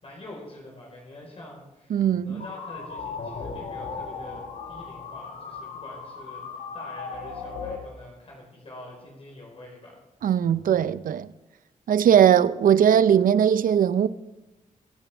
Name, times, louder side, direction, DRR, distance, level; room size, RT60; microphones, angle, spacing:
voice 1, 0.0-10.0, left 1 dB, 45° left, 4.5 m, -45 dB
voice 2, 1.9-2.4 10.2-11.3 11.9-14.1, right 9 dB, 80° right, 0.5 m, -19 dB
sound 1, 2.4-7.8, left 5 dB, 80° left, 1.9 m, -37 dB
22.5 x 10.0 x 3.5 m
cardioid pair, 95°, 14 cm